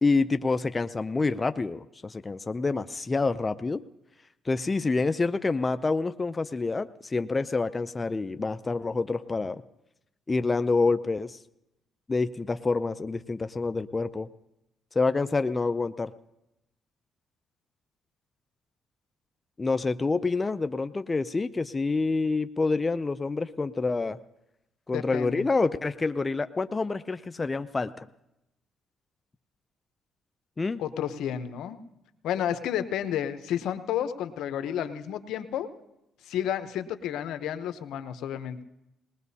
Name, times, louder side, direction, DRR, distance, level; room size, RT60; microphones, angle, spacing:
voice 1, 0.0-3.8 4.5-9.6 10.3-11.4 12.1-14.3 14.9-16.1 19.6-24.2 24.9-28.1 30.6-30.8, left 3 dB, 25° left, 11 dB, 0.4 m, -27 dB
voice 2, 24.9-25.4 30.8-31.8 32.2-35.7 36.3-38.6, left 10 dB, 85° left, 10 dB, 0.7 m, -31 dB
20.0 x 19.5 x 2.8 m, 0.89 s
cardioid pair, 90°, 0 cm